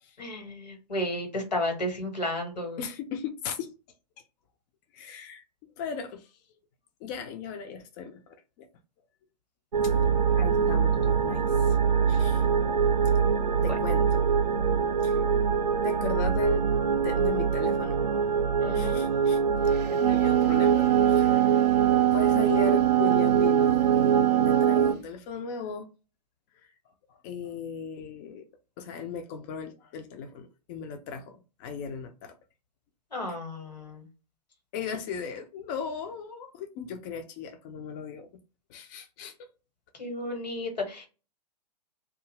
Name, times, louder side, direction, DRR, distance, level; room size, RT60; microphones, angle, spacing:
voice 1, 0.2-2.8 13.6-13.7 18.6-19.0 33.1-34.0 40.0-41.1, left 1 dB, 80° left, 1.3 m, -33 dB
voice 2, 2.8-3.7 4.9-5.4 5.8-6.4 7.0-8.7 9.8-9.9 10.4-11.8 12.1-12.5 13.6-14.3 15.0-15.2 15.8-16.7 16.9-18.2 18.7-19.4 19.9-21.6 22.1-25.9 26.5-26.7 27.1-28.4 28.8-32.4 33.3-33.4 34.7-38.3 38.7-39.5, left 6 dB, 30° left, 0.4 m, -37 dB
sound 1, 9.7-24.9, right 6 dB, 90° right, 0.4 m, -25 dB
Wind instrument woodwind instrument, 19.8-24.9, right 17 dB, 25° right, 0.5 m, -23 dB
2.6 x 2.3 x 2.8 m
figure-of-eight pair, 110°, 21 cm